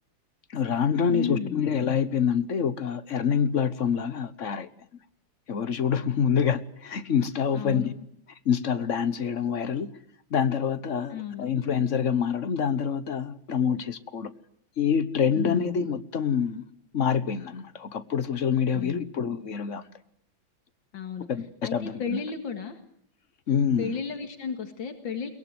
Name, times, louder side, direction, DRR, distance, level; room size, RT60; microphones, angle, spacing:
voice 1, 0.5-4.7 5.5-7.9 8.4-9.9 10.3-14.3 14.8-16.6 16.9-19.9 21.3-22.2 23.5-23.9, left 7 dB, 45° left, 1.4 m, -26 dB
voice 2, 1.1-1.6 7.5-7.9 11.1-11.5 15.3-15.8 18.7-19.1 20.9-21.3 21.6-22.8 23.8-25.3, left 6 dB, 80° left, 2.6 m, -33 dB
22.5 x 21.5 x 7.9 m
omnidirectional pair, 2.1 m